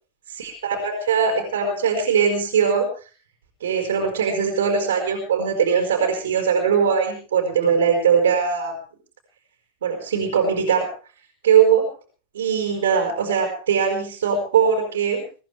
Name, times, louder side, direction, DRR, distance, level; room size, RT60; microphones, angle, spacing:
voice 1, 0.3-2.9 3.6-8.7 9.8-10.9 11.4-11.9 12.3-15.2, right 6 dB, 65° right, 2 dB, 4.9 m, -20 dB
24.0 x 16.5 x 3.5 m, 0.37 s
figure-of-eight pair, 90°, 0 cm